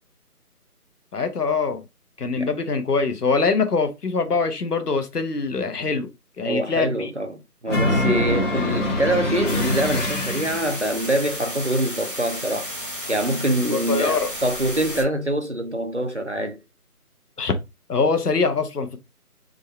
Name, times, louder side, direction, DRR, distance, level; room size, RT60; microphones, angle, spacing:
voice 1, 1.1-1.8 2.2-6.1 6.4-7.1 13.7-14.3 17.4-17.5 17.9-19.0, left 4 dB, 80° left, 1.1 m, -23 dB
voice 2, 6.5-12.7 13.1-16.6, right 1 dB, 50° right, 0.5 m, -25 dB
sound 1, 7.7-10.9, left 1 dB, 50° left, 1.4 m, -24 dB
sound 2, 9.5-15.0, equal, 35° left, 0.8 m, -33 dB
3.6 x 2.2 x 4.2 m
figure-of-eight pair, 180°, 46 cm